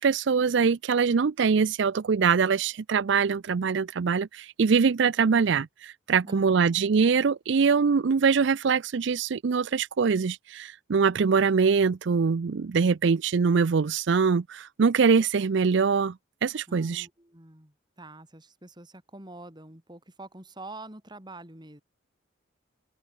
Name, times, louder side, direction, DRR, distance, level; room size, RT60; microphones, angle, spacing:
voice 1, 0.0-16.2 16.4-17.1, right 5 dB, 60° right, 0.4 m, -23 dB
voice 2, 6.2-6.8 16.7-21.8, right 2 dB, 20° right, 3.8 m, -46 dB
head